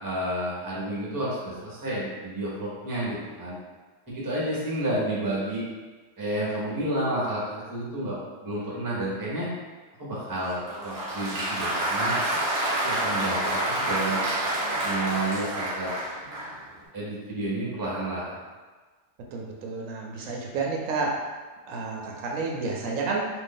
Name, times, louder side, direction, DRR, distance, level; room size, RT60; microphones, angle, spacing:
voice 1, 0.0-3.6 4.1-5.6 6.2-9.5 10.0-12.2 12.7-14.2 14.8-15.9 16.9-18.4, right 1 dB, 20° right, -7 dB, 0.8 m, -30 dB
Applause, 10.4-16.6, right 1 dB, 45° right, 0.9 m, -28 dB
voice 2, 19.3-21.2 21.7-23.3, right 3 dB, 85° right, -1 dB, 1.0 m, -30 dB
2.8 x 2.6 x 3.7 m, 1.4 s
omnidirectional pair, 1.3 m